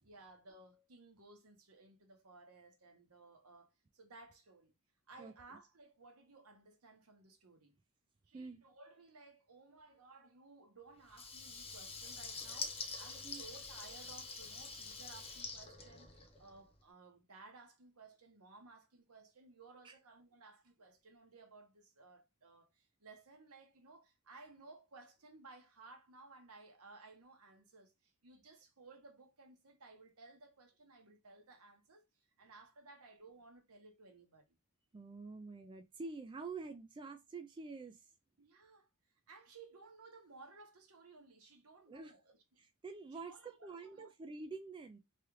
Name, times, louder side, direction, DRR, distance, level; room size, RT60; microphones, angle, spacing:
voice 1, 0.0-4.7 5.1-7.8 8.2-32.1 32.4-34.5 38.4-38.9 39.3-42.6 43.1-44.1, right 3 dB, 80° right, 1.0 m, -59 dB
Water tap faucet / Liquid, 11.1-16.6, left 4 dB, 25° left, 0.7 m, -46 dB
voice 2, 34.9-38.1 41.9-42.1 42.6-45.0, right 4 dB, 20° right, 0.3 m, -47 dB
3.2 x 2.4 x 3.0 m
head